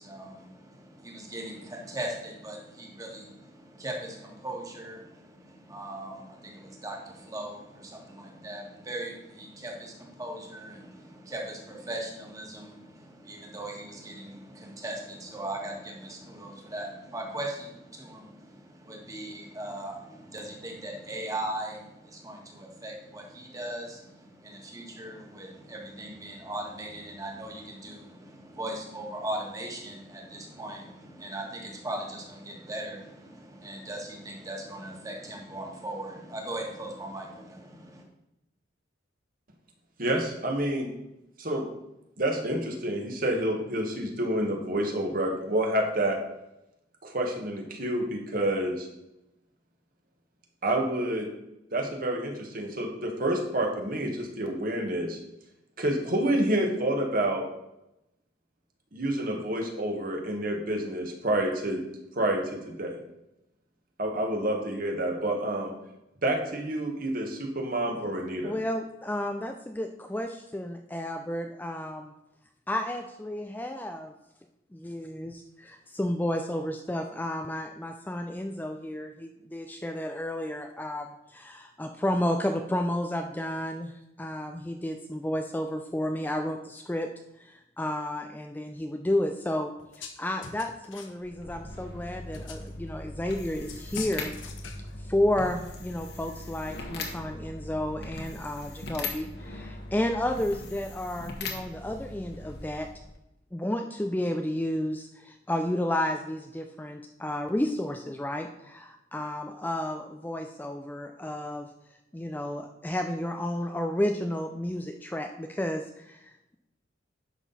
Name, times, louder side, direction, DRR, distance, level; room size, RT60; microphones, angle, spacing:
voice 1, 0.0-38.0, right 1 dB, 20° right, 0 dB, 1.7 m, -39 dB
voice 2, 40.0-40.9 41.4-41.7 42.2-46.2 47.0-48.9 50.6-51.3 51.7-55.2 55.8-57.4 58.9-61.8 62.1-63.0 64.0-65.7 66.2-68.5, right 1 dB, 50° right, 2 dB, 1.5 m, -28 dB
voice 3, 68.4-72.1 72.7-74.1 74.7-87.1 87.4-89.7 89.9-94.3 95.0-102.9 103.5-111.7 112.1-116.2, left 1 dB, 10° left, 4 dB, 0.4 m, -32 dB
sound 1, 89.8-90.2 90.4-91.2 92.3-92.7 93.7-95.0, left 7 dB, 90° left, 1.1 m, -43 dB
sound 2, 91.2-103.2, left 2 dB, 60° left, 1.5 m, -40 dB
10.5 x 6.0 x 4.1 m, 0.89 s
head